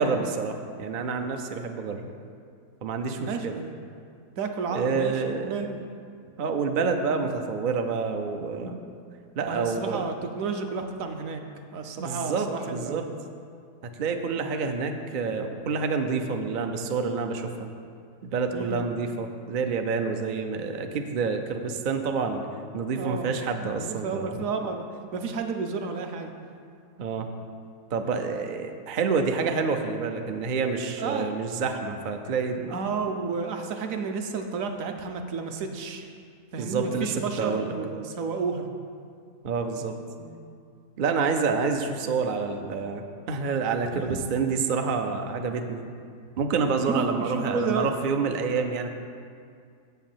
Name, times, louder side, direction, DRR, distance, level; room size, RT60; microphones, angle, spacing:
voice 1, 0.0-2.1 2.8-3.6 4.7-5.6 6.4-8.8 9.4-10.1 12.0-13.0 13.8-17.7 18.2-22.4 22.7-24.4 27.0-27.3 27.9-32.8 36.6-37.7 39.4-39.9 41.0-45.8 46.4-48.9, right 5 dB, 80° right, 5 dB, 0.4 m, -28 dB
voice 2, 3.3-3.7 4.4-5.8 6.4-6.5 9.5-11.4 11.7-13.1 18.5-18.9 23.0-23.3 23.8-24.9 25.1-26.3 31.0-31.3 32.7-36.1 36.5-38.7 40.2-40.4 43.9-44.2 46.9-47.9, right 5 dB, 65° right, 5 dB, 1.0 m, -31 dB
7.5 x 5.8 x 7.2 m, 2.3 s
omnidirectional pair, 1.7 m